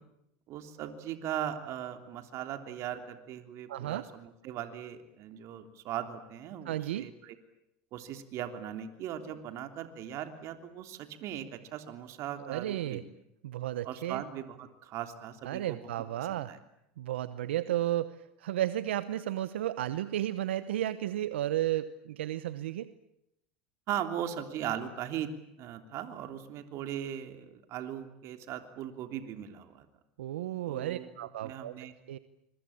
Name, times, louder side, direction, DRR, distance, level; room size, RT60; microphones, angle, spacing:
voice 1, 0.5-7.3 7.9-13.0 13.8-15.8 16.3-16.6 23.9-25.3 25.6-29.8 30.7-31.1 31.4-31.9, right 10 dB, 55° right, 7 dB, 3.2 m, -39 dB
voice 2, 3.7-4.0 6.6-7.1 12.5-13.0 13.4-14.2 15.4-16.5 17.0-22.9 30.2-32.2, right 13 dB, 85° right, 14 dB, 1.0 m, -33 dB
28.0 x 23.0 x 8.8 m, 0.82 s
hypercardioid pair, 100°, 6 cm